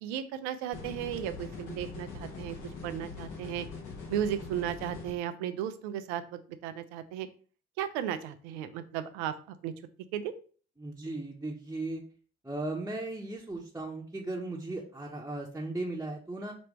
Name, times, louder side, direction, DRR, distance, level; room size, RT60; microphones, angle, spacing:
voice 1, 0.0-2.6 2.8-3.7 4.1-6.2 6.6-7.3 7.8-9.4 9.6-9.7 10.1-10.3, right 10 dB, 75° right, 11 dB, 0.5 m, -35 dB
sound 1, 0.7-5.1, left 4 dB, 70° left, 1.2 m, -42 dB
voice 2, 10.8-12.0 12.4-16.6, right 2 dB, 10° right, -2 dB, 0.9 m, -37 dB
5.1 x 3.2 x 3.1 m, 0.41 s
hypercardioid pair, 40°, 33 cm